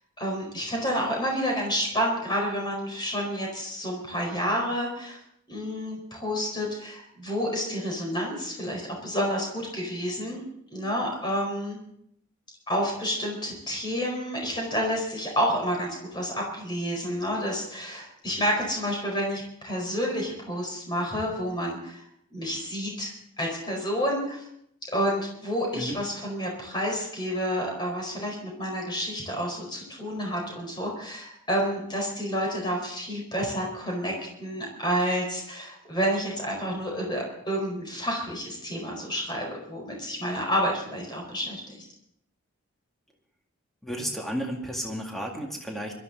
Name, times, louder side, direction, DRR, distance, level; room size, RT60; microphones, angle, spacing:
voice 1, 0.2-5.2 5.5-10.4 10.7-11.8 12.7-22.0 22.3-24.4 24.9-34.1 34.4-41.8, equal, 20° left, -1 dB, 4.7 m, -29 dB
voice 2, 43.8-45.9, equal, ahead, 0 dB, 2.1 m, -32 dB
21.5 x 13.5 x 3.9 m, 0.73 s
head